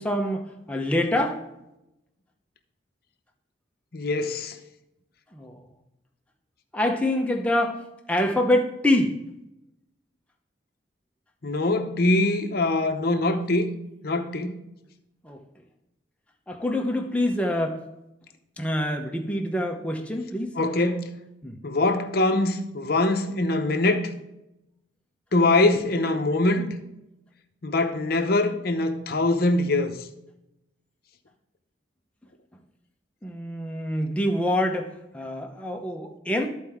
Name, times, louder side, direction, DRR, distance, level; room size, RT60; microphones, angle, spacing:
voice 1, 0.0-1.4 5.3-5.6 6.7-7.8 8.1-9.1 15.2-15.4 16.5-17.8 18.6-20.5 21.4-21.6 33.2-36.5, left 1 dB, 5° left, 0.8 m, -25 dB
voice 2, 3.9-4.6 11.4-13.7 14.0-14.6 20.6-21.1 21.6-24.1 25.3-26.7 27.6-29.9, left 2 dB, 50° left, 0.8 m, -23 dB
13.5 x 4.4 x 3.6 m
head